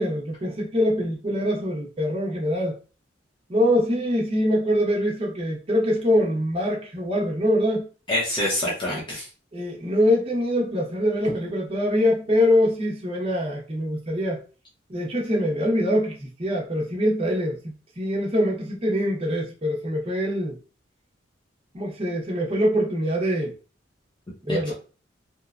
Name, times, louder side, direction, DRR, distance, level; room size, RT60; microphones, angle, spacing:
voice 1, 0.0-2.7 3.5-7.9 9.5-14.4 14.9-20.6 21.7-23.5 24.5-24.7, equal, 30° right, 0.7 m, -24 dB
voice 2, 8.1-9.3 24.5-24.7, left 1 dB, 25° left, 0.7 m, -26 dB
2.9 x 2.2 x 2.4 m
head